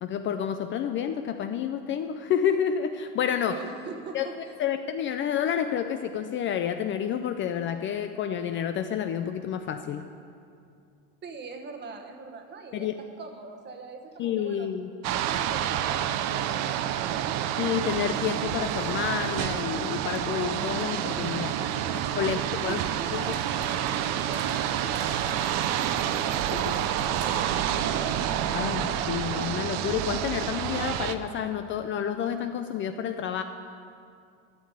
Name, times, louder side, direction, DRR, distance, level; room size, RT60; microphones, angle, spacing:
voice 1, 0.0-3.6 4.1-4.3 4.6-10.1 12.7-13.0 14.2-14.9 17.6-21.5 22.2-22.8 23.1-23.2 26.5-26.8 28.5-33.4, left 8 dB, 35° left, 8 dB, 0.4 m, -29 dB
voice 2, 3.5-4.5 11.2-14.7 15.1-17.4 21.4-22.0 22.6-28.1, right 4 dB, 30° right, 5 dB, 1.2 m, -42 dB
sound 1, 15.0-31.1, right 10 dB, 45° right, 0.6 m, -28 dB
sound 2, 20.6-27.8, right 3 dB, 85° right, 2.8 m, -44 dB
11.5 x 6.5 x 8.8 m, 2.4 s
supercardioid pair, 125°, 36 cm